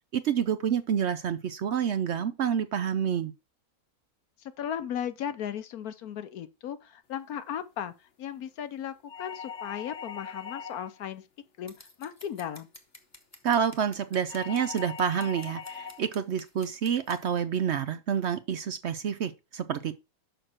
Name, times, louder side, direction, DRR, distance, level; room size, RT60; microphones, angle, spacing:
voice 1, 0.1-3.3 13.4-19.9, right 8 dB, 60° right, 0.8 m, -28 dB
voice 2, 4.4-11.2 11.6-12.7, left 9 dB, 80° left, 1.3 m, -36 dB
sound 1, 9.1-11.0 14.3-16.1, left 6 dB, 55° left, 1.2 m, -41 dB
Scissors, 11.7-17.2, left 1 dB, 10° left, 1.2 m, -52 dB
6.5 x 6.2 x 4.5 m
omnidirectional pair, 1.6 m